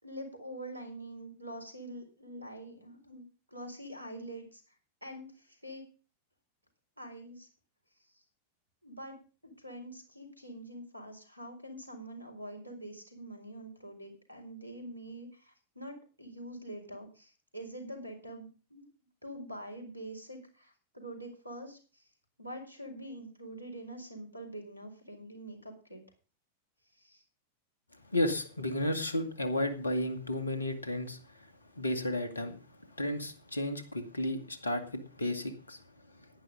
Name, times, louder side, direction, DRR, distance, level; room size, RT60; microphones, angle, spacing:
voice 1, 0.0-4.8 5.0-5.8 7.0-7.5 8.0-8.2 8.8-9.2 9.4-18.9 19.2-22.1 22.4-26.0 26.9-27.2, right 1 dB, 85° right, 5 dB, 4.4 m, -45 dB
voice 2, 28.1-31.5 31.8-32.6 33.0-35.8, left 1 dB, 80° left, 8 dB, 2.1 m, -33 dB
11.0 x 10.0 x 5.3 m, 0.35 s
figure-of-eight pair, 90°, 0 cm